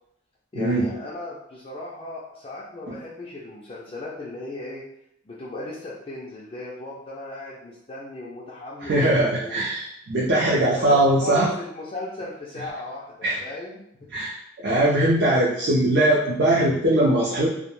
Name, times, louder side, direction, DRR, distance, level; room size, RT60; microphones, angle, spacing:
voice 1, 0.5-4.8 5.3-9.6 10.8-13.8, left 2 dB, 30° left, -7 dB, 0.3 m, -36 dB
voice 2, 8.8-11.5 13.2-13.4 14.1-17.5, right 1 dB, 55° right, -5 dB, 0.4 m, -21 dB
2.2 x 2.1 x 3.0 m, 0.76 s
head